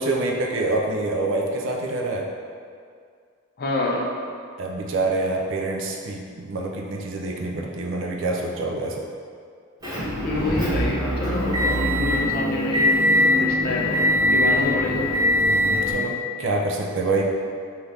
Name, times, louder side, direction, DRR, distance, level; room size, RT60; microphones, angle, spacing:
voice 1, 0.0-2.3 4.6-9.1 15.4-17.2, right 2 dB, 65° right, 0 dB, 0.4 m, -26 dB
voice 2, 3.6-4.1 10.2-14.0 14.3-15.1, left 2 dB, 45° left, -2 dB, 0.4 m, -27 dB
Motor vehicle (road) / Engine, 9.8-15.9, left 1 dB, 15° right, 0.8 m, -22 dB
2.8 x 2.4 x 3.3 m, 2.2 s
head